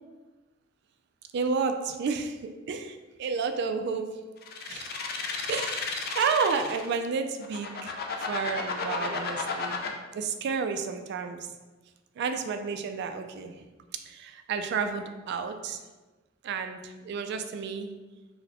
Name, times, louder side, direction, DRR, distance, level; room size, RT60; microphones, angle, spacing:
voice 1, 1.3-4.1 4.7-4.9 5.5-11.5 12.2-13.6 14.1-15.8 16.4-17.9, right 5 dB, 60° right, 7 dB, 0.3 m, -31 dB
sound 1, 4.4-6.9 7.4-9.9, left 5 dB, 50° left, 0.4 m, -33 dB
3.9 x 2.1 x 2.9 m, 1.2 s
head